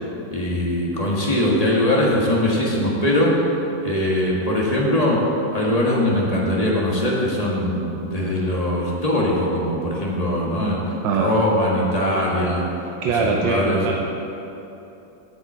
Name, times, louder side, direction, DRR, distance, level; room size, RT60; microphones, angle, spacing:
voice 1, 0.3-3.3 3.8-5.2 5.5-10.8 11.1-12.6 13.2-14.0, left 1 dB, 20° left, -4 dB, 1.6 m, -21 dB
voice 2, 13.0-14.0, right 4 dB, 85° right, 1 dB, 1.4 m, -22 dB
16.5 x 5.8 x 4.4 m, 2.9 s
omnidirectional pair, 2.0 m